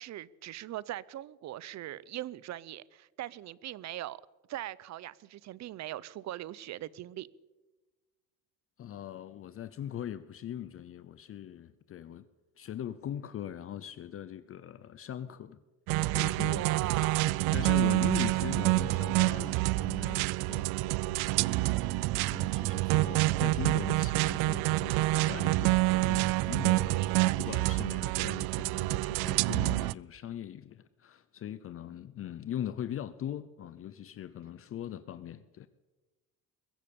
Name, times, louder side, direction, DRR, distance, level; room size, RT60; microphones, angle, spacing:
voice 1, 0.0-4.2 4.5-7.3 16.5-17.3 26.9-27.4, right 14 dB, 50° right, 21 dB, 0.7 m, -40 dB
voice 2, 8.8-12.3 12.6-15.6 16.0-17.1 17.5-35.7, left 10 dB, 40° left, 14 dB, 0.7 m, -41 dB
sound 1, 15.9-29.9, right 21 dB, 85° right, 0.6 m, -27 dB
22.0 x 14.0 x 8.5 m, 1.2 s
cardioid pair, 150°, 36 cm